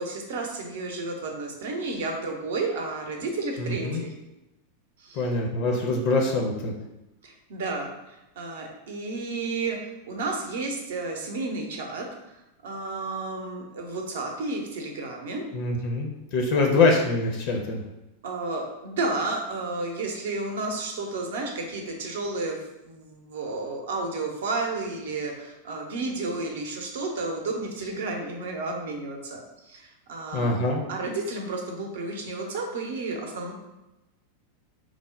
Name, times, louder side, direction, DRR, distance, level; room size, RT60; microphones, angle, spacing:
voice 1, 0.0-4.1 5.0-5.2 7.2-7.9 8.4-12.1 12.6-15.5 16.5-16.9 18.2-22.6 22.8-30.5 30.9-33.5, right 3 dB, 60° right, 2 dB, 0.6 m, -32 dB
voice 2, 3.6-4.0 5.1-6.7 15.5-17.8 30.3-30.8, left 3 dB, 45° left, 1 dB, 0.5 m, -24 dB
3.2 x 2.0 x 3.7 m, 0.96 s
figure-of-eight pair, 90°, 0 cm